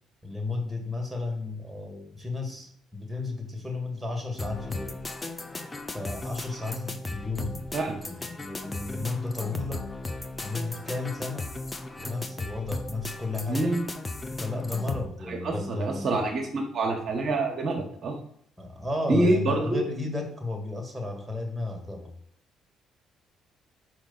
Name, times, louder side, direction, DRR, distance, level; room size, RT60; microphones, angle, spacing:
voice 1, 0.2-5.0 5.9-9.9 10.4-11.5 12.0-13.8 14.4-16.2 18.6-22.1, left 3 dB, 10° right, 3 dB, 1.8 m, -33 dB
sound 1, 4.4-15.1, left 2 dB, 25° left, 0.7 m, -36 dB
voice 2, 13.5-13.8 15.3-18.2 19.1-19.8, right 2 dB, 50° right, 1 dB, 1.2 m, -26 dB
5.1 x 5.0 x 4.0 m, 0.66 s
supercardioid pair, 60°, 0 cm